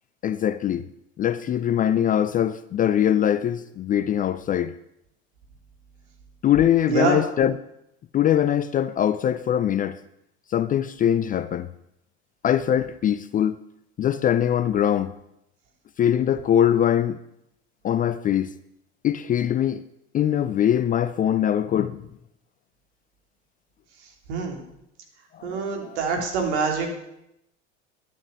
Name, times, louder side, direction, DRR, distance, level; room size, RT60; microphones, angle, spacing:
voice 1, 0.2-0.8 1.2-4.7 6.4-7.6 8.1-10.0 10.5-11.7 12.4-13.6 14.0-15.1 16.0-17.2 17.8-18.5 19.0-19.8 20.1-22.0 25.3-26.0, left 10 dB, 25° left, 0.4 m, -22 dB
voice 2, 6.9-7.2 24.3-24.6 25.4-26.9, right 4 dB, 65° right, 3.3 m, -25 dB
11.5 x 9.0 x 7.0 m
hypercardioid pair, 80°, 36 cm